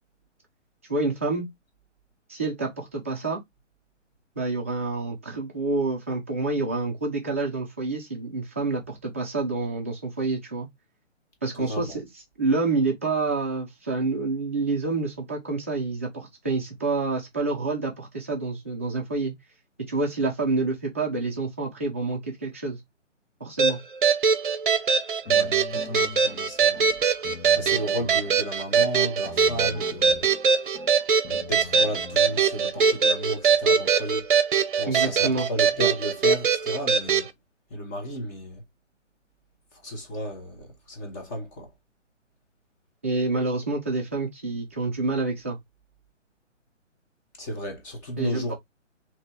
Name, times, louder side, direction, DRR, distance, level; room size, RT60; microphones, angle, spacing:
voice 1, 0.9-1.5 2.3-3.4 4.4-10.7 11.4-12.1 12.4-19.3 19.9-22.8 23.4-23.8 34.9-35.5 43.0-45.6 48.2-48.5, right 3 dB, 10° right, 0.5 m, -28 dB
voice 2, 11.6-12.0 25.3-26.9 27.5-30.3 31.3-34.3 34.8-37.3 37.7-38.6 39.8-41.7 47.4-48.5, equal, 15° left, 0.9 m, -33 dB
sound 1, 23.6-37.3, right 6 dB, 45° right, 0.8 m, -22 dB
sound 2, 25.2-33.2, left 5 dB, 70° left, 1.3 m, -44 dB
3.3 x 2.9 x 4.2 m
figure-of-eight pair, 150°, 37 cm